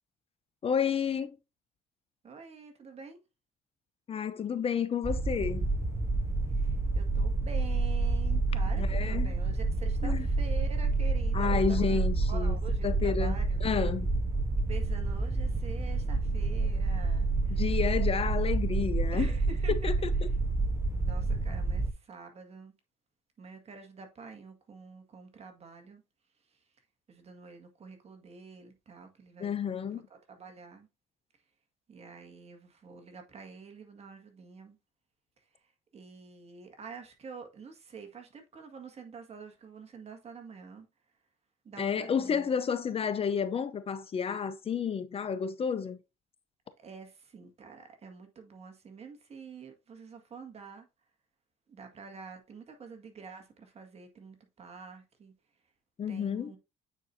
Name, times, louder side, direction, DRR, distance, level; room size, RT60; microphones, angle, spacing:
voice 1, 0.6-1.4 4.1-5.7 8.8-9.3 10.0-10.3 11.3-12.5 12.8-13.3 13.6-14.1 17.5-19.3 19.7-19.9 29.4-30.0 41.8-46.0 56.0-56.5, left 7 dB, 35° left, 0.6 m, -30 dB
voice 2, 2.2-3.2 6.5-12.0 12.3-13.6 14.7-17.6 19.1-19.9 20.2-20.3 21.0-22.7 23.4-26.0 27.1-29.6 29.9-30.9 31.9-34.8 35.4-35.5 35.9-40.9 41.6-42.5 46.8-50.9 51.7-55.3 56.1-56.6, right 5 dB, 40° right, 1.8 m, -47 dB
sound 1, 5.0-21.9, right 3 dB, 15° right, 0.7 m, -29 dB
8.9 x 4.5 x 2.6 m
cardioid pair, 110°, 17 cm